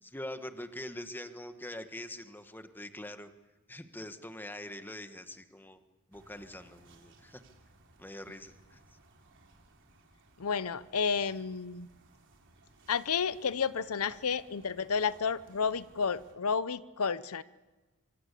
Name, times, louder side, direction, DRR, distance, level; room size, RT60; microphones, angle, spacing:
voice 1, 0.0-3.3 3.7-5.8 6.1-7.4 8.0-8.8, left 1 dB, 10° left, 8 dB, 1.5 m, -44 dB
sound 1, 6.1-16.3, right 2 dB, 60° right, 3.8 m, -61 dB
voice 2, 10.4-11.9 12.9-17.4, left 6 dB, 80° left, 16 dB, 0.7 m, -31 dB
25.0 x 24.5 x 8.4 m, 1.2 s
head